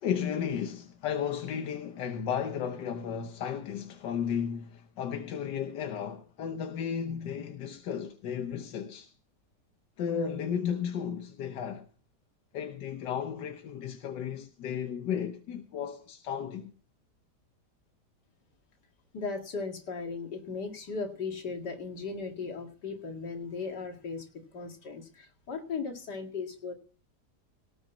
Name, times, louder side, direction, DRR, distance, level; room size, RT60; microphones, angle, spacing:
voice 1, 0.0-9.1 10.0-11.9 12.5-16.7, left 8 dB, 90° left, 1.6 m, -34 dB
voice 2, 19.1-26.7, left 4 dB, 75° left, 2.7 m, -37 dB
18.0 x 6.3 x 7.1 m
omnidirectional pair, 1.8 m